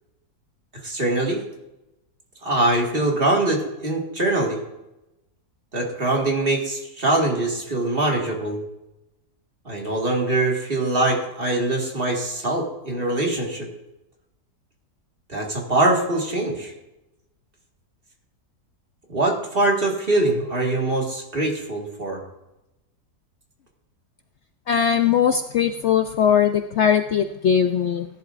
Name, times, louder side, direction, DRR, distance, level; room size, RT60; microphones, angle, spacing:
voice 1, 0.8-1.4 2.4-4.6 5.7-8.6 9.7-13.7 15.3-16.7 19.1-22.2, right 2 dB, 35° right, 0 dB, 2.0 m, -23 dB
voice 2, 24.7-28.1, left 8 dB, 90° left, 8 dB, 0.6 m, -20 dB
17.0 x 11.0 x 2.5 m, 0.94 s
omnidirectional pair, 1.8 m